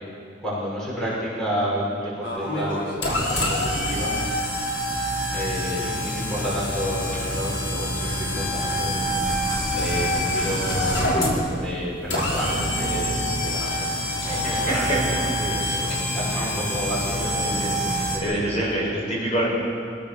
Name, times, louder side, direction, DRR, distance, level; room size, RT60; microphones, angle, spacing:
voice 1, 0.4-4.1 5.3-9.1 9.7-11.1 11.6-13.9 14.2-17.5 18.1-18.5, equal, 5° left, -8 dB, 6.5 m, -30 dB
sound 1, 2.2-18.2, equal, 85° left, 5.7 m, -26 dB
voice 2, 14.2-15.0 15.5-15.8 16.3-16.5 17.4-19.4, right 1 dB, 35° left, -5 dB, 6.6 m, -27 dB
25.5 x 17.0 x 7.1 m, 2.3 s
head